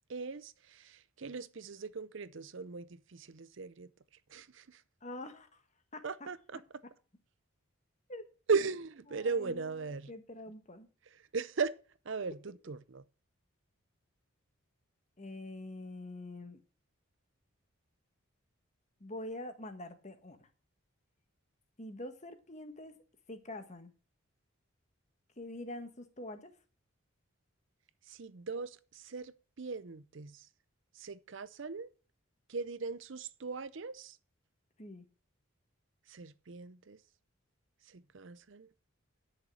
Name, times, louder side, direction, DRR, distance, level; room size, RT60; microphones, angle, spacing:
voice 1, 0.1-3.9 4.3-4.8 6.0-6.4 8.5-10.1 11.3-11.7 12.1-12.4 12.7-13.0 28.1-30.4 31.0-31.9 32.5-34.2 36.1-37.0 37.9-38.7, right 4 dB, 60° right, 0.6 m, -38 dB
voice 2, 5.0-5.6 5.9-6.3 8.1-8.2 9.1-10.9 15.2-16.6 19.0-20.5 21.8-23.0 23.3-23.9 25.4-26.6 34.8-35.1, left 1 dB, 30° left, 1.4 m, -45 dB
11.0 x 6.7 x 6.3 m
head